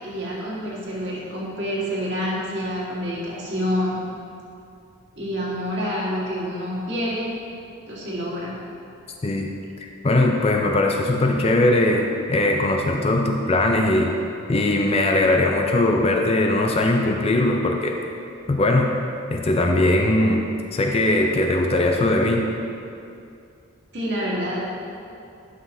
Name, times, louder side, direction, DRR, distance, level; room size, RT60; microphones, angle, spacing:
voice 1, 0.0-4.0 5.1-7.3 7.9-8.6 23.9-24.7, equal, 55° right, -5 dB, 1.7 m, -27 dB
voice 2, 9.8-14.1 14.5-18.0 18.5-18.9 19.3-20.4 20.7-22.5, left 2 dB, 30° left, 2 dB, 0.4 m, -20 dB
11.5 x 6.0 x 2.7 m, 2.6 s
head